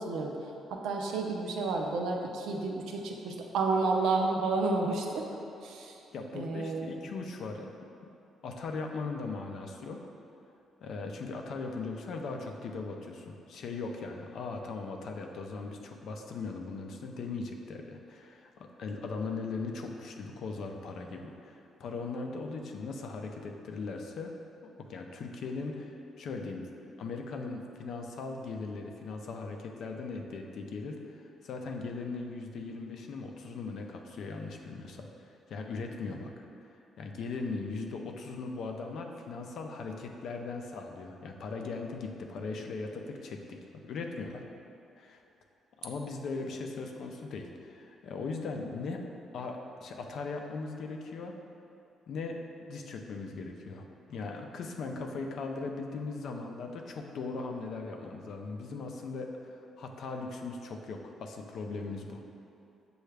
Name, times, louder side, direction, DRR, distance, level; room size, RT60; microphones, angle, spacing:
voice 1, 0.0-5.3 5.6-6.0 6.3-6.9 36.1-36.2, right 3 dB, 85° right, 1 dB, 0.5 m, -31 dB
voice 2, 6.1-7.7 8.4-10.0 10.8-24.3 24.8-26.7 27.0-36.3 36.7-44.4 45.0-45.2 45.8-49.0 49.3-51.3 52.1-62.2, left 3 dB, 70° left, 3 dB, 0.4 m, -39 dB
6.5 x 2.3 x 3.2 m, 2.7 s
cardioid pair, 90°, 0 cm